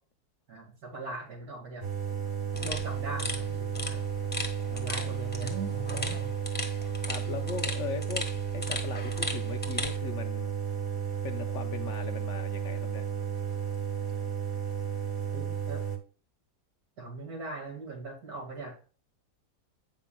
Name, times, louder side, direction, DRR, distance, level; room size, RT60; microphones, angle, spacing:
voice 1, 0.5-1.8 2.6-4.0 4.7-6.3 15.3-15.8 17.0-18.7, right 3 dB, 65° right, 2.5 m, -40 dB
sound 1, 1.8-16.0, right 7 dB, 25° right, 1.1 m, -33 dB
sound 2, 2.5-10.0, left 2 dB, 5° left, 1.1 m, -37 dB
voice 2, 4.7-5.3 7.0-8.2 8.5-10.6 11.2-13.0, left 7 dB, 65° left, 0.7 m, -39 dB
8.7 x 5.9 x 2.2 m
omnidirectional pair, 1.7 m